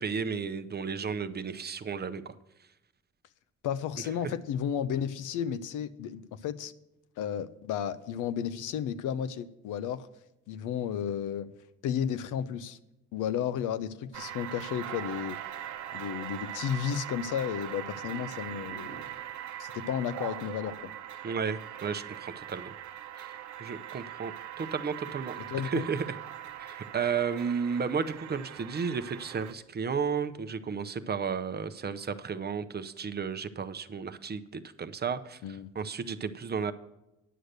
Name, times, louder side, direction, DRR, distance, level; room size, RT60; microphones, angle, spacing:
voice 1, 0.0-2.4 4.2-4.3 21.2-22.7 23.2-26.1 26.6-35.4 35.7-36.7, right 6 dB, 35° right, 11 dB, 0.7 m, -33 dB
voice 2, 3.6-6.7 7.2-10.1 10.5-11.5 11.8-12.8 13.1-15.4 15.9-19.1 19.6-20.9 25.5-25.9 35.4-35.7, left 8 dB, 85° left, 13 dB, 0.6 m, -33 dB
sound 1, 14.1-29.5, right 11 dB, 70° right, 0.8 m, -41 dB
10.0 x 6.4 x 6.6 m, 0.91 s
cardioid pair, 90°, 30 cm